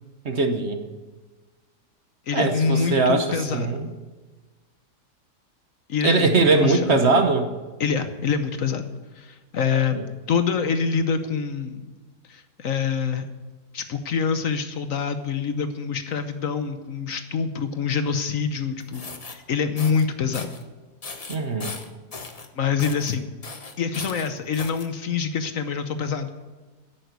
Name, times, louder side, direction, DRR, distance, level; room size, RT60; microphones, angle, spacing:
voice 1, 0.2-0.8 2.3-3.9 6.0-7.5 9.9-10.0 21.3-21.7, right 3 dB, 45° right, 6 dB, 1.2 m, -21 dB
voice 2, 2.3-3.8 5.9-7.0 7.8-8.9 9.1-10.0 10.3-11.8 12.3-13.3 13.7-20.5 22.6-23.3 23.8-26.3, left 6 dB, 60° left, 9 dB, 1.2 m, -26 dB
sound 1, 18.8-19.3 19.8-20.0 20.3-20.6 21.0-22.5 22.8-23.1 23.4-24.9, left 4 dB, 30° left, 0.9 m, -37 dB
11.0 x 8.9 x 8.1 m, 1.3 s
omnidirectional pair, 1.7 m